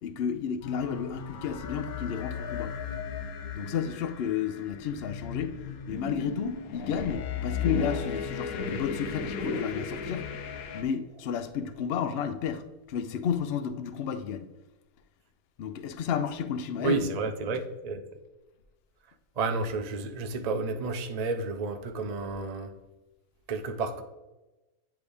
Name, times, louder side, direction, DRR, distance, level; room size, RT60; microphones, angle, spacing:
voice 1, 0.0-2.7 3.5-5.6 5.9-10.3 10.7-14.5 15.6-17.1, left 7 dB, 65° left, 0.6 m, -32 dB
Hidden Planet, 0.6-10.8, left 6 dB, 80° left, 1.1 m, -35 dB
voice 2, 16.8-18.0 19.4-22.7 23.5-24.0, right 3 dB, 65° right, 0.4 m, -31 dB
9.6 x 3.5 x 3.4 m
omnidirectional pair, 1.5 m